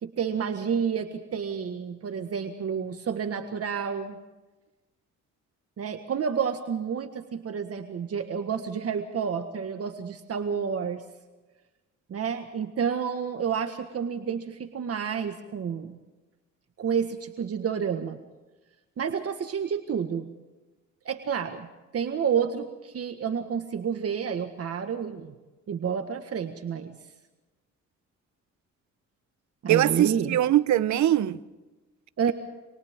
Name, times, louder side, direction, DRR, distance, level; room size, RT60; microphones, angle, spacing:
voice 1, 0.0-4.2 5.8-11.0 12.1-16.0 16.8-18.2 19.0-20.3 21.0-21.7 21.9-25.3 25.7-26.9 29.6-30.4 32.2-32.3, right 7 dB, 50° right, 1.7 m, -30 dB
voice 2, 29.7-31.4, right 12 dB, 70° right, 1.1 m, -22 dB
29.0 x 27.0 x 3.7 m
cardioid pair, 90°, 30 cm